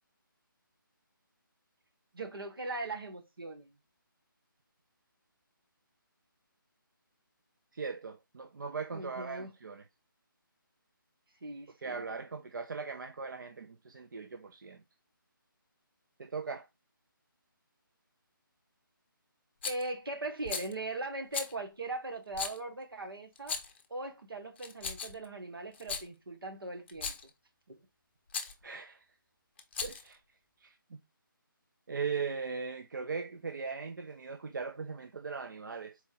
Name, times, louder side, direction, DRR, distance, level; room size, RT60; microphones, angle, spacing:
voice 1, 2.1-3.7 8.9-9.5 11.4-12.0 19.6-23.6 23.9-27.1, right 2 dB, 80° right, 1.6 m, -39 dB
voice 2, 7.7-9.9 11.8-14.8 16.2-16.7 28.6-29.1 29.8-30.2 30.6-31.0 31.9-36.0, right 5 dB, 60° right, 0.6 m, -39 dB
Rattle, 19.6-19.9 20.4-20.7 21.3-21.5 22.3-22.6 23.4-23.8 24.6-25.3 25.7-26.1 26.9-27.3 28.3-28.5 29.6-30.1, left 5 dB, 30° left, 0.7 m, -37 dB
4.2 x 2.8 x 3.8 m
figure-of-eight pair, 165°, 12 cm